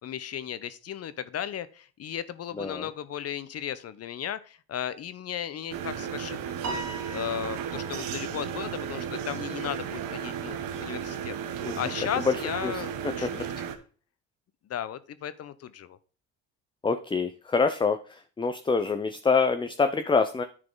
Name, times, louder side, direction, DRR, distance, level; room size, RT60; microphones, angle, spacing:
voice 1, 0.0-6.8 7.1-11.4 11.7-13.6 14.7-16.0, left 9 dB, 45° left, 15 dB, 0.9 m, -35 dB
sound 1, 5.7-13.7, right 8 dB, 75° right, 1.3 m, -34 dB
Piano, 6.6-8.2, right 4 dB, 50° right, 2.5 m, -38 dB
voice 2, 16.8-18.0 18.4-20.4, left 4 dB, 15° left, 9 dB, 0.6 m, -25 dB
9.7 x 4.8 x 3.8 m, 0.38 s
supercardioid pair, 85°, 34 cm